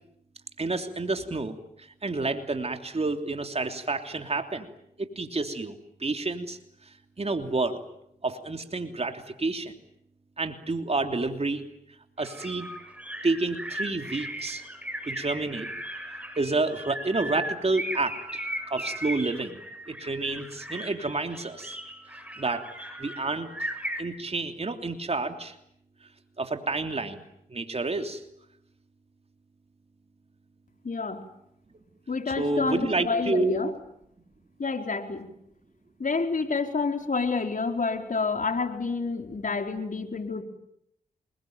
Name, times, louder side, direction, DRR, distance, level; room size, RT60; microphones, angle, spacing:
voice 1, 0.6-1.6 2.0-4.7 5.0-6.6 7.2-7.8 8.2-9.7 10.4-11.6 12.2-12.7 13.2-14.6 15.0-15.7 16.4-19.6 19.9-21.7 22.4-22.7 23.0-23.5 24.0-25.5 26.4-27.2 27.5-28.2 32.4-33.6, right 3 dB, 35° right, 6 dB, 3.2 m, -29 dB
sound 1, 12.2-24.0, equal, 10° right, 7.6 m, -37 dB
voice 2, 30.8-31.2 32.1-33.7 34.6-35.3 36.0-40.4, left 4 dB, 50° left, 5 dB, 4.5 m, -28 dB
27.0 x 22.0 x 9.3 m, 0.75 s
supercardioid pair, 45°, 17 cm